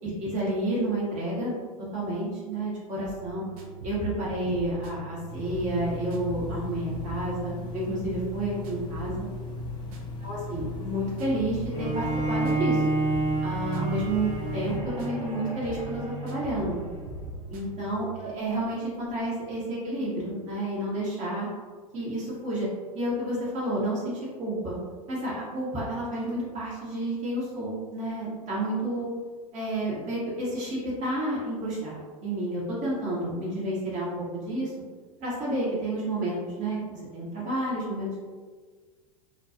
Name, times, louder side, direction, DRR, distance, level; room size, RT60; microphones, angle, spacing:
voice 1, 0.0-1.5 1.9-3.4 3.8-9.3 10.2-12.8 13.4-16.8 17.5-21.5 21.9-22.7 22.9-24.7 25.1-29.1 29.5-34.7 35.2-38.1, right 1 dB, 40° right, -7 dB, 1.2 m, -30 dB
sound 1, 3.0-18.2, right 1 dB, 70° right, 0.5 m, -41 dB
sound 2, 5.3-14.8, left 3 dB, 25° left, 0.5 m, -38 dB
Bowed string instrument, 11.7-16.9, right 2 dB, 20° right, 1.0 m, -30 dB
2.5 x 2.3 x 2.6 m, 1.5 s
hypercardioid pair, 100°, 19 cm